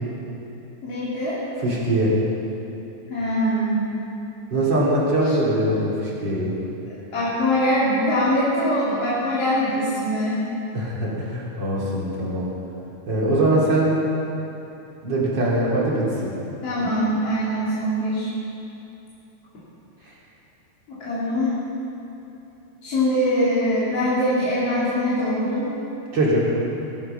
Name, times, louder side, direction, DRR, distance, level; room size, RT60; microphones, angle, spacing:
voice 1, 0.8-1.4 3.1-3.8 5.2-5.3 7.1-10.4 16.6-18.3 20.9-21.6 22.8-25.7, equal, 40° left, -11 dB, 3.4 m, -22 dB
voice 2, 1.6-2.2 4.5-6.5 10.7-12.5 13.1-13.9 15.0-16.3 26.1-26.5, right 1 dB, 30° right, -5 dB, 3.1 m, -22 dB
20.5 x 9.9 x 5.8 m, 2.9 s
omnidirectional pair, 4.5 m